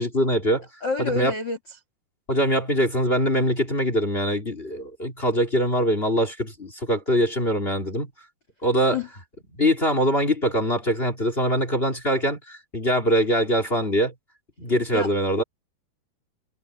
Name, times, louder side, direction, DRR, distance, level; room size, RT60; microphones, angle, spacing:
voice 1, 0.0-0.7 1.0-1.3 2.3-8.1 8.6-9.0 9.6-14.1 14.6-15.4, equal, 15° left, 2.5 m, -23 dB
voice 2, 0.8-1.6 8.9-9.1 14.9-15.1, left 4 dB, 80° left, 1.0 m, -27 dB
omnidirectional pair, 4.9 m